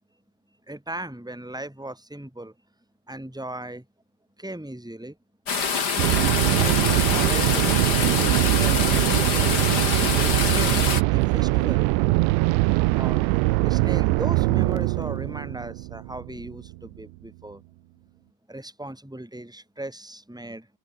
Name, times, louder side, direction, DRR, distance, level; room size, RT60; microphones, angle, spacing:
voice 1, 0.7-2.5 3.1-3.8 4.4-5.2 6.5-7.7 8.2-9.5 10.2-11.9 12.9-13.2 13.6-17.6 18.5-20.7, right 1 dB, ahead, 4.3 m, -37 dB
sound 1, 5.5-11.0, left 6 dB, 40° left, 1.5 m, -25 dB
sound 2, 6.0-16.7, right 22 dB, 90° right, 2.9 m, -22 dB
omnidirectional pair, 5.1 m